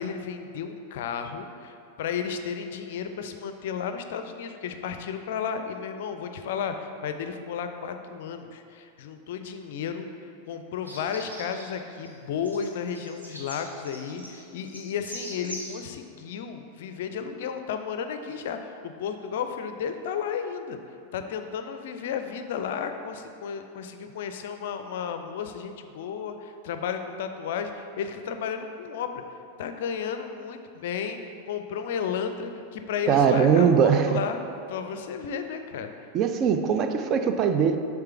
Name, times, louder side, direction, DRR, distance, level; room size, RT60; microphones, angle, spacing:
voice 1, 0.0-20.8 21.1-29.2 29.6-34.4 34.7-35.9, left 7 dB, 55° left, 7 dB, 0.4 m, -33 dB
sound 1, 10.8-11.7 11.9-12.1 12.5-15.8, equal, 80° right, 0.9 m, -41 dB
voice 2, 33.1-34.2 36.1-37.8, right 7 dB, 35° right, 7 dB, 0.3 m, -21 dB
6.6 x 3.5 x 4.6 m, 2.5 s
figure-of-eight pair, 90°, 0 cm